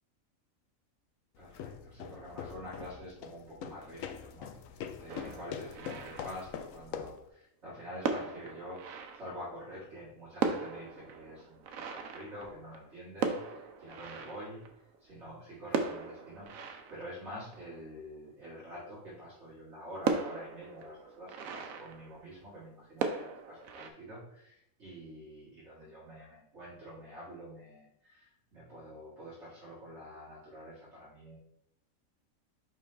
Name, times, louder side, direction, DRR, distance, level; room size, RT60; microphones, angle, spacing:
sound 1, 1.4-7.3, left 8 dB, 75° left, 1.0 m, -43 dB
voice 1, 1.4-14.6 15.0-31.4, equal, 55° right, -10 dB, 2.3 m, -47 dB
sound 2, 5.1-6.9 7.7-7.8 8.0-9.8 10.1-10.2 10.4-15.1 15.7-18.3 18.8-18.9 19.3-19.4 20.0-22.7 23.0-23.9, right 5 dB, 80° right, 1.1 m, -38 dB
5.4 x 5.2 x 3.3 m, 0.76 s
omnidirectional pair, 1.5 m